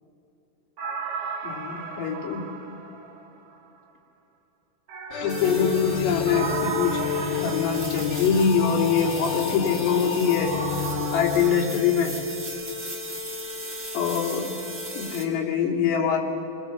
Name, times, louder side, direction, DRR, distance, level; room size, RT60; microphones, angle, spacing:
sound 1, 0.8-3.6 4.9-8.7 10.4-11.7, right 6 dB, 50° right, 2.0 m, -35 dB
voice 1, 1.4-2.5 5.2-7.0 7.4-10.5 11.1-12.2 13.9-14.5 15.0-16.2, left 7 dB, 90° left, -2 dB, 4.8 m, -24 dB
sound 2, 5.1-12.1, left 8 dB, 70° left, 2.7 m, -31 dB
sound 3, 5.3-15.2, left 2 dB, 20° right, 2.3 m, -35 dB
29.5 x 21.5 x 7.1 m, 2.9 s
omnidirectional pair, 4.8 m